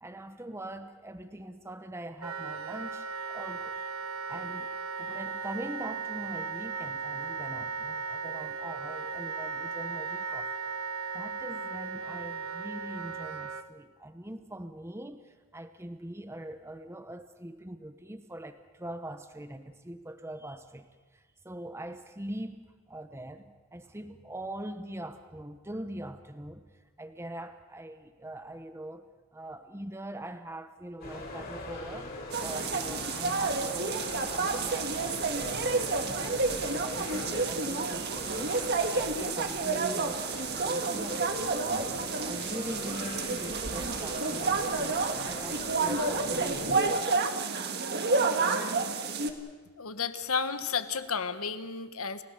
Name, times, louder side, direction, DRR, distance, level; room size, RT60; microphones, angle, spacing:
voice 1, 0.0-3.8 4.3-10.5 11.1-26.7 27.0-29.1 29.3-32.1 32.4-46.8, right 1 dB, 10° right, 8 dB, 0.9 m, -43 dB
Wind instrument woodwind instrument, 2.2-13.6, right 5 dB, 70° right, 1.2 m, -36 dB
sound 1, 31.0-46.8, left 2 dB, 45° left, 5.1 m, -41 dB
sound 2, 32.3-49.3, right 4 dB, 45° right, 1.7 m, -30 dB
voice 2, 49.8-52.2, left 5 dB, 75° left, 11 dB, 1.3 m, -32 dB
30.0 x 17.0 x 6.7 m, 1.4 s
head